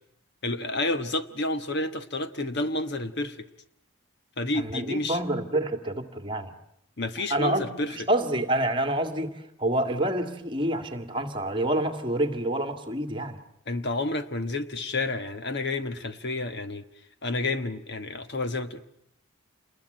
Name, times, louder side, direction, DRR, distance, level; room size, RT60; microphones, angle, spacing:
voice 1, 0.4-3.5 4.4-5.2 7.0-8.1 13.7-16.9 17.2-18.8, left 2 dB, 50° left, 10 dB, 1.3 m, -30 dB
voice 2, 4.6-6.5 7.3-13.4, right 1 dB, 25° right, 7 dB, 2.2 m, -28 dB
28.0 x 21.5 x 9.2 m, 0.73 s
head